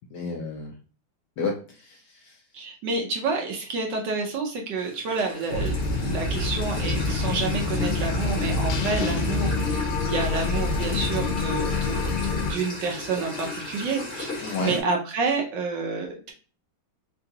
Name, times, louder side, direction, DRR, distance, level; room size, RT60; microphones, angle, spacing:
voice 1, 0.1-0.7 1.4-2.4 14.4-14.8, left 4 dB, 70° left, 1 dB, 1.0 m, -31 dB
voice 2, 2.5-9.8 10.1-16.3, right 4 dB, 70° right, 1 dB, 1.2 m, -29 dB
sound 1, 4.8-14.8, left 3 dB, 40° left, 0.9 m, -35 dB
sound 2, 5.5-12.5, left 3 dB, 90° left, 1.5 m, -26 dB
3.8 x 2.3 x 2.7 m, 0.37 s
omnidirectional pair, 2.3 m